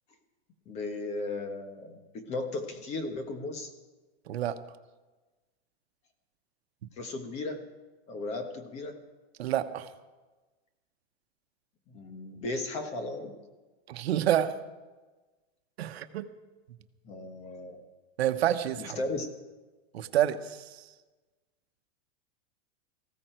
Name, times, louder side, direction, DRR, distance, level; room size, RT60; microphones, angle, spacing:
voice 1, 0.7-3.7 7.0-7.6 8.1-9.0 11.9-13.4 17.0-17.8 18.8-19.3, left 2 dB, 20° left, 7 dB, 1.3 m, -36 dB
voice 2, 4.3-4.6 9.4-9.9 13.9-14.6 15.8-16.3 18.2-19.0 19.9-20.8, right 11 dB, 70° right, 10 dB, 1.2 m, -28 dB
18.5 x 15.5 x 4.5 m, 1.2 s
supercardioid pair, 170°, 32 cm